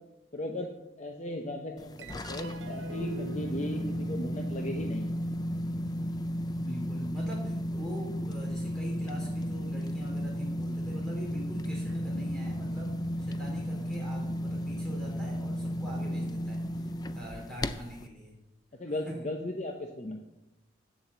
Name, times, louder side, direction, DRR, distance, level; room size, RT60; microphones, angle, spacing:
voice 1, 0.3-0.7 1.0-5.1 18.8-20.2, left 1 dB, 35° left, 3 dB, 0.7 m, -37 dB
sound 1, 1.8-18.1, equal, 20° left, 0.3 m, -34 dB
sound 2, 2.0-8.7, right 3 dB, 65° right, 0.7 m, -46 dB
voice 2, 6.6-12.9 13.2-16.9 17.1-18.3 19.1-19.2, equal, 5° left, -3 dB, 3.3 m, -43 dB
8.5 x 7.4 x 7.1 m, 0.98 s
head